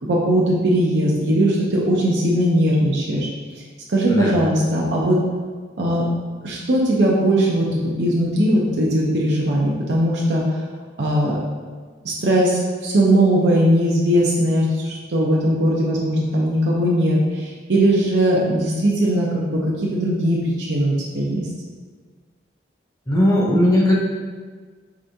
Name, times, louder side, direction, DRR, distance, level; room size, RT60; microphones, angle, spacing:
voice 1, 0.0-3.3 3.9-5.2 5.8-6.1 6.4-10.6 11.0-11.4 12.0-21.5, right 1 dB, 70° right, -4 dB, 0.6 m, -19 dB
voice 2, 4.1-4.4 23.1-23.9, left 1 dB, 20° left, -3 dB, 0.7 m, -17 dB
4.9 x 3.3 x 2.7 m, 1.5 s
head